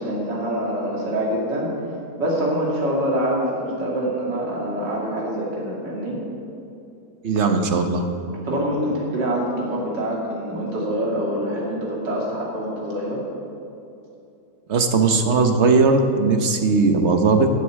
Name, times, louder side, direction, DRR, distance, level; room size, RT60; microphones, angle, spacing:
voice 1, 0.0-1.7 2.2-6.2 8.4-13.2, equal, 85° right, -4 dB, 2.9 m, -25 dB
voice 2, 7.2-8.1 14.7-17.5, right 4 dB, 45° right, 6 dB, 1.1 m, -18 dB
13.0 x 6.8 x 7.9 m, 2.7 s
omnidirectional pair, 1.9 m